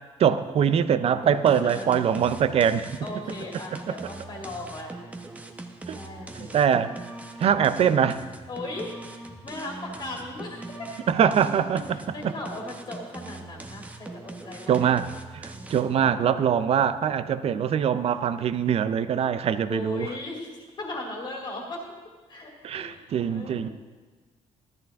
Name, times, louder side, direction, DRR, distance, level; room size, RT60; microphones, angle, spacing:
voice 1, 0.2-2.9 3.9-4.0 5.9-6.0 6.3-7.0 7.4-8.2 11.1-12.0 12.2-12.3 14.7-20.1 22.6-23.7, right 8 dB, 55° right, 13 dB, 0.5 m, -23 dB
sound 1, 1.2-16.0, right 2 dB, 10° right, 0.8 m, -41 dB
voice 2, 1.6-1.9 3.0-4.9 5.9-6.6 8.5-10.9 11.9-14.8 15.5-16.2 19.7-21.8 22.3-23.7, left 2 dB, 40° left, -1 dB, 2.2 m, -38 dB
14.0 x 13.0 x 3.5 m, 1.3 s
cardioid pair, 145°, 12 cm